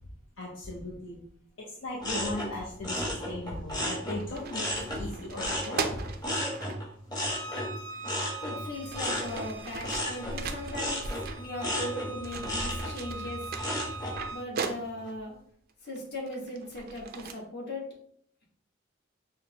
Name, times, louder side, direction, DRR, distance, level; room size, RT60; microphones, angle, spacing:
voice 1, 0.4-1.2 1.6-6.1, left 1 dB, 75° left, -3 dB, 0.7 m, -37 dB
sound 1, 2.0-5.0 5.3-14.2 14.6-15.1, left 1 dB, 20° left, 0.9 m, -34 dB
sound 2, 3.6-3.8 4.2-6.8 7.9-8.0 8.6-11.9 12.2-15.2 15.9-17.3, right 5 dB, 50° right, 0.4 m, -39 dB
Bowed string instrument, 7.2-14.5, right 2 dB, 90° right, 0.7 m, -43 dB
voice 2, 8.4-11.0 11.4-13.4 14.3-15.3 15.8-17.8, left 1 dB, 60° left, -2 dB, 1.3 m, -38 dB
5.6 x 2.1 x 2.8 m, 0.64 s
head